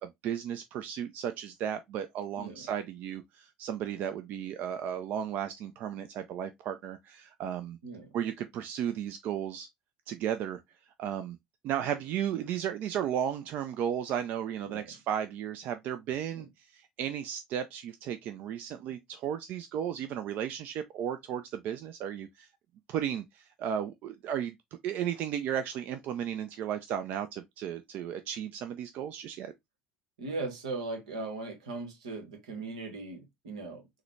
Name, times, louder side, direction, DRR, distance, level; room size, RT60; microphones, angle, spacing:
voice 1, 0.0-7.8 8.1-9.7 10.1-10.6 11.0-11.4 11.6-22.5 22.9-24.6 24.8-29.5, right 9 dB, 55° right, 0.3 m, -34 dB
voice 2, 2.4-2.7 7.8-8.1 14.6-14.9 30.2-33.9, right 3 dB, 85° right, 1.0 m, -38 dB
3.8 x 2.1 x 3.0 m
hypercardioid pair, 70°, 3 cm